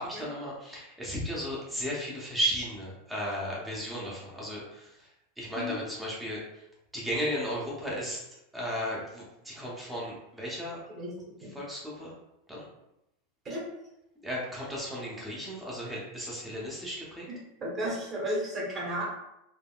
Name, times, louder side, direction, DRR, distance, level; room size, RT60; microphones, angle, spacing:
voice 1, 0.0-5.1 5.4-6.4 6.9-8.2 8.5-10.8 11.5-12.1 12.5-12.7 14.2-17.3, equal, 5° right, -5 dB, 0.6 m, -35 dB
voice 2, 17.6-19.0, equal, 25° right, -5 dB, 1.0 m, -33 dB
3.5 x 2.0 x 2.2 m, 0.85 s
supercardioid pair, 155°, 0 cm